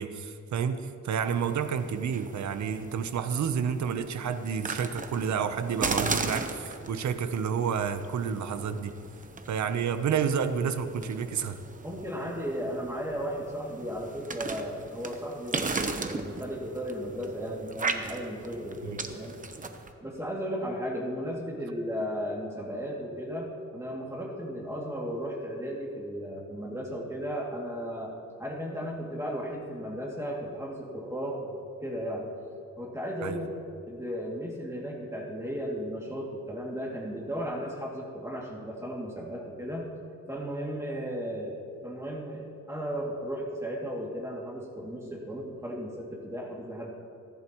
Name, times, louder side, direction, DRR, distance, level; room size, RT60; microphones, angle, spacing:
voice 1, 0.0-9.0 9.5-11.6 18.8-19.0 33.2-33.4, right 7 dB, 65° right, 10 dB, 0.9 m, -30 dB
sound 1, 1.2-19.9, right 3 dB, 25° right, 0.9 m, -37 dB
voice 2, 11.8-19.3 20.0-23.5 23.7-28.1 28.4-32.3 32.8-33.5 33.9-39.9 40.3-46.9, equal, 10° right, -3 dB, 2.5 m, -35 dB
29.5 x 11.0 x 3.1 m, 2.6 s
cardioid pair, 120°, 31 cm